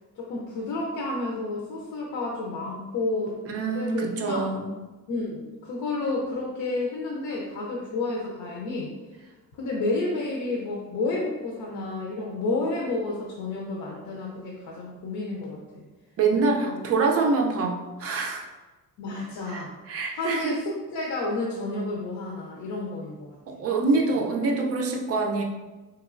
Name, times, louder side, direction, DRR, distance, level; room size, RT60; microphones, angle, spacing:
voice 1, 0.2-3.4 3.7-4.4 5.1-8.9 9.5-15.8 16.4-16.7 19.0-19.7 20.1-23.4, left 2 dB, 75° left, -2 dB, 0.7 m, -30 dB
voice 2, 3.5-4.7 16.2-18.5 19.5-20.6 23.5-25.4, right 3 dB, 45° right, 1 dB, 0.5 m, -25 dB
4.4 x 3.0 x 2.5 m, 1.2 s
cardioid pair, 165°, 34 cm